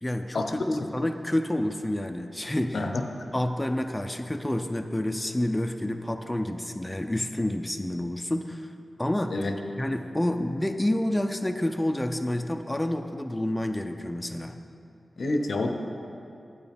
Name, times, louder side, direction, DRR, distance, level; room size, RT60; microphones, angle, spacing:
voice 1, 0.0-2.8 3.3-8.7 9.0-9.3 9.8-14.6, left 1 dB, 15° left, 5 dB, 0.4 m, -29 dB
voice 2, 15.2-15.7, left 2 dB, 75° left, 4 dB, 0.6 m, -27 dB
9.1 x 8.5 x 3.5 m, 2.6 s
cardioid pair, 50°, 0 cm